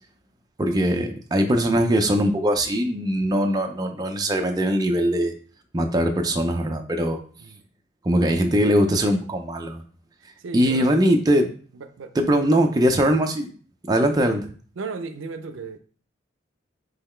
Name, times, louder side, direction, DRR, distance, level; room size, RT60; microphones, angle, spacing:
voice 1, 0.6-5.3 5.7-7.2 8.0-9.8 10.5-11.5 12.1-13.5 13.9-14.5, equal, 20° right, 0.4 m, -21 dB
voice 2, 10.4-11.0 11.7-12.1 14.8-15.8, right 4 dB, 75° right, 0.5 m, -35 dB
3.8 x 3.0 x 4.3 m
head